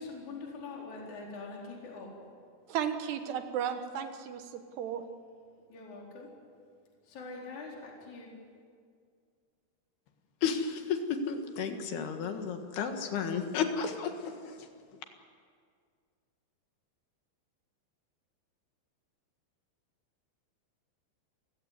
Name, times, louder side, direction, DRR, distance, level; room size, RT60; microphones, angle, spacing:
voice 1, 0.0-2.1 5.7-6.3 7.0-8.3, left 3 dB, 40° left, -2 dB, 5.3 m, -43 dB
voice 2, 2.7-5.0, right 8 dB, 70° right, 8 dB, 3.0 m, -34 dB
voice 3, 10.4-14.6, left 6 dB, 65° left, 5 dB, 3.4 m, -32 dB
29.0 x 16.0 x 9.6 m, 2.1 s
omnidirectional pair, 5.5 m